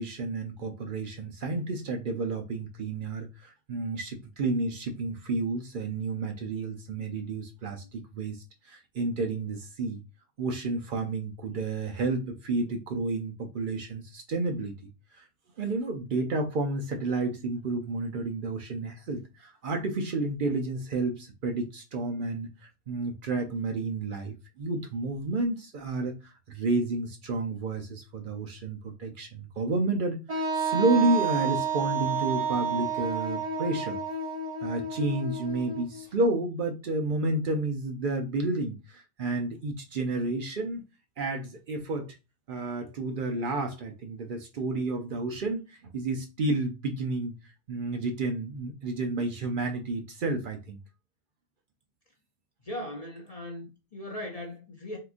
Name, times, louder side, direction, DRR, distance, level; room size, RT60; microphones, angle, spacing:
voice 1, 0.0-10.0 10.4-15.2 15.6-34.0 34.6-40.8 41.2-42.1 42.5-47.3 47.7-50.8, right 2 dB, 55° right, 0.6 m, -31 dB
Wind instrument woodwind instrument, 30.3-36.1, right 5 dB, 25° right, 1.2 m, -30 dB
voice 2, 52.6-55.0, left 1 dB, 40° left, 0.7 m, -38 dB
3.5 x 2.8 x 2.4 m
omnidirectional pair, 1.2 m